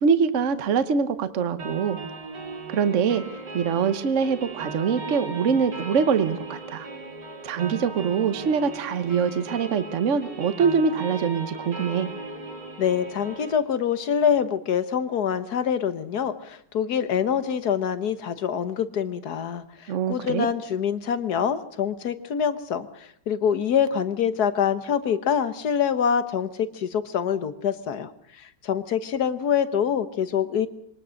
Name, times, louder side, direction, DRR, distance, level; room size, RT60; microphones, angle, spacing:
voice 1, 0.0-2.0 2.7-3.2 3.5-6.9 7.4-12.1 19.9-20.5, right 6 dB, 50° right, 11 dB, 1.2 m, -24 dB
sound 1, 1.6-13.6, right 2 dB, 75° right, 4.0 m, -37 dB
voice 2, 12.8-28.1 28.4-30.7, left 8 dB, 65° left, 12 dB, 1.6 m, -25 dB
23.0 x 19.0 x 6.4 m, 0.68 s
omnidirectional pair, 1.9 m